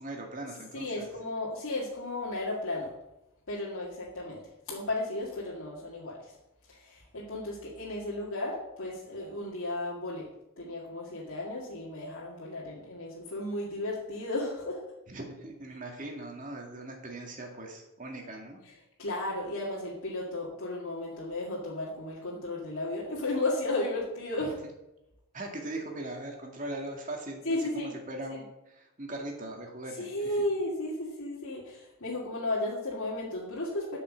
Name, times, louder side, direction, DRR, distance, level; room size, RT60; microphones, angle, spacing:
voice 1, 0.0-1.1 15.1-18.6 25.3-30.4, right 1 dB, 35° right, 1 dB, 2.0 m, -40 dB
voice 2, 0.7-2.9 3.5-4.4 4.7-6.3 6.7-10.3 10.6-14.8 19.0-24.5 27.4-27.9 28.3-28.4 30.0-34.0, left 2 dB, 75° left, -6 dB, 2.1 m, -34 dB
8.4 x 5.9 x 7.3 m, 0.91 s
head